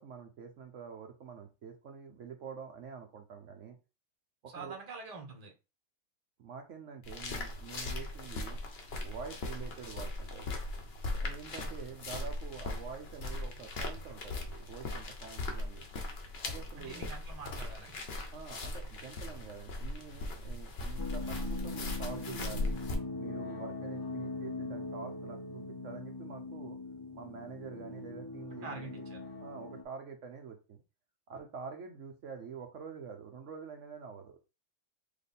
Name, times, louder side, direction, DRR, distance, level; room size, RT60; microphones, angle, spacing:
voice 1, 0.0-3.8 4.5-4.7 6.4-8.6 9.0-10.6 11.2-16.0 16.4-17.1 18.3-22.7 23.2-26.8 27.1-29.1 29.4-30.8 31.3-34.4, right 6 dB, 65° right, 3 dB, 1.1 m, -46 dB
voice 2, 4.5-5.5 16.8-18.0 28.6-29.2, right 4 dB, 30° right, 2 dB, 1.0 m, -45 dB
sound 1, 7.0-22.9, left 2 dB, 50° left, 1.1 m, -39 dB
sound 2, 21.0-29.8, left 3 dB, 25° left, 0.5 m, -41 dB
3.5 x 3.1 x 4.1 m, 0.29 s
omnidirectional pair, 1.4 m